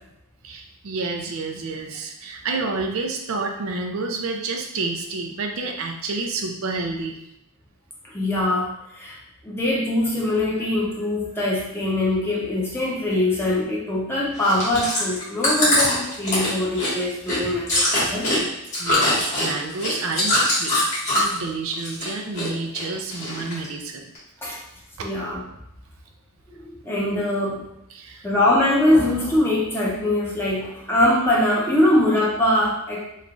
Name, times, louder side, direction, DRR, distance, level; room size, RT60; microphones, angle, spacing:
voice 1, 0.4-7.2 18.8-20.7 21.1-24.1 25.0-25.1 27.9-28.3, right 3 dB, 70° right, 2 dB, 0.4 m, -29 dB
voice 2, 8.0-9.2 9.4-17.8 18.1-18.3 24.4-24.6 25.0-25.4 26.6-27.7 28.2-33.1, left 1 dB, 10° left, -5 dB, 0.7 m, -22 dB
Chewing mastication, 14.4-21.4 21.7-22.5 22.7-23.7 24.1-24.2, left 1 dB, 35° left, 1.5 m, -22 dB
3.1 x 2.3 x 3.7 m, 0.82 s
head